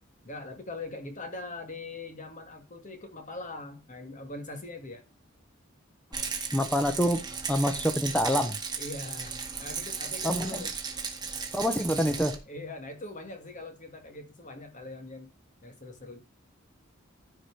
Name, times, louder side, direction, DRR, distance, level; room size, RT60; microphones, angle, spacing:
voice 1, 0.2-5.0 8.8-10.8 12.5-15.3 15.6-16.2, left 2 dB, 40° left, 2.1 m, -42 dB
Rattle, 6.1-12.4, right 5 dB, 20° right, 1.9 m, -35 dB
voice 2, 6.5-7.2 7.5-8.6 10.2-10.7 11.5-12.4, equal, 5° left, 0.9 m, -26 dB
14.5 x 4.9 x 4.8 m
head